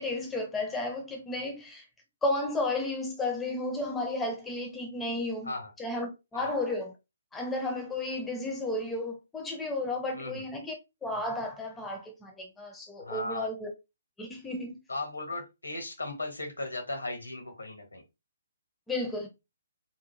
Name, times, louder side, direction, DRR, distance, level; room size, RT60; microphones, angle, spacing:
voice 1, 0.0-1.8 2.2-5.5 5.8-6.9 7.3-10.8 11.0-13.7 14.2-14.8 18.9-19.3, left 2 dB, 10° left, 0.5 m, -33 dB
voice 2, 13.0-13.5 14.9-18.0, left 2 dB, 75° left, 1.0 m, -37 dB
2.8 x 2.1 x 2.8 m
figure-of-eight pair, 130°, 0 cm